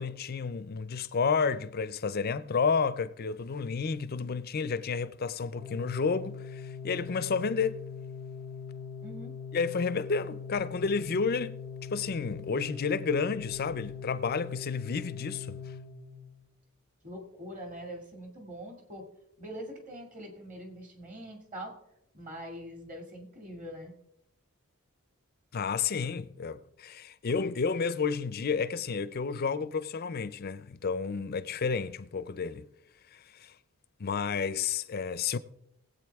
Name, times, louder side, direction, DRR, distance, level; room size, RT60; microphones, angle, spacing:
voice 1, 0.0-7.8 9.5-11.6 11.9-15.6 25.5-32.7 33.4-33.5 34.0-35.4, left 5 dB, 45° left, 0.5 m, -31 dB
Organ, 5.5-16.4, left 6 dB, 65° right, 1.8 m, -41 dB
voice 2, 9.0-9.3 17.0-19.1 19.4-21.7 22.1-23.9, equal, 35° right, 2.4 m, -43 dB
20.0 x 8.3 x 3.5 m
head